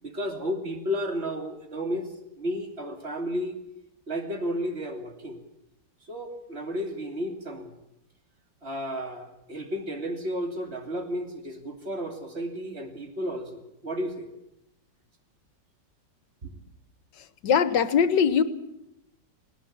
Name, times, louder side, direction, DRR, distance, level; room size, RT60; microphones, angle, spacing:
voice 1, 0.0-3.5 4.1-5.4 6.0-7.8 8.6-14.3 16.4-16.5, equal, 35° right, 4 dB, 3.0 m, -33 dB
voice 2, 17.2-18.4, left 7 dB, 75° left, 14 dB, 1.8 m, -22 dB
19.5 x 18.5 x 8.7 m, 0.85 s
omnidirectional pair, 1.9 m